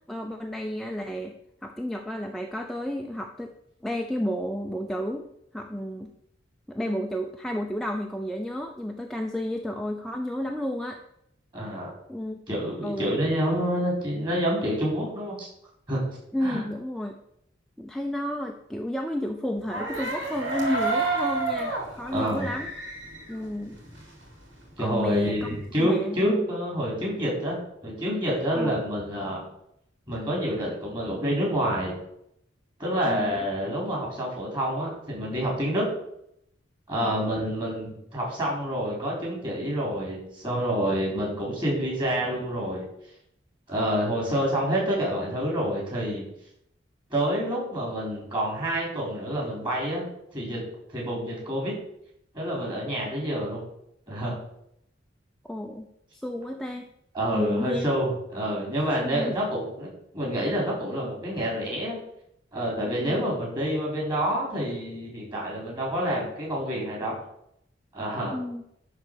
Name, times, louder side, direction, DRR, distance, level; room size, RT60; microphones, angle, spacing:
voice 1, 0.1-1.3 1.6-3.5 3.8-5.2 5.5-6.1 6.7-11.0 12.1-12.4 12.8-13.2 16.3-17.2 17.8-22.7 23.3-23.8 24.8-25.5 25.8-26.5 28.5-28.7 33.0-33.4 37.0-37.2 55.4-56.9 57.3-57.9 59.0-59.4 62.8-63.2 68.3-68.6, equal, ahead, 2 dB, 0.5 m, -31 dB
voice 2, 11.5-11.9 12.5-15.5 15.9-16.0 16.4-16.6 22.1-22.5 24.8-29.4 30.1-31.9 32.8-35.8 36.9-42.9 43.7-46.2 47.1-50.0 50.3-50.6 50.9-51.7 52.3-53.6 54.1-54.4 57.1-59.9 60.1-62.0 62.5-67.1 67.9-68.3, equal, 25° right, -3 dB, 4.1 m, -28 dB
sound 1, 19.6-24.3 24.6-25.7, right 3 dB, 85° right, 3.3 m, -30 dB
11.0 x 4.2 x 6.7 m, 0.76 s
head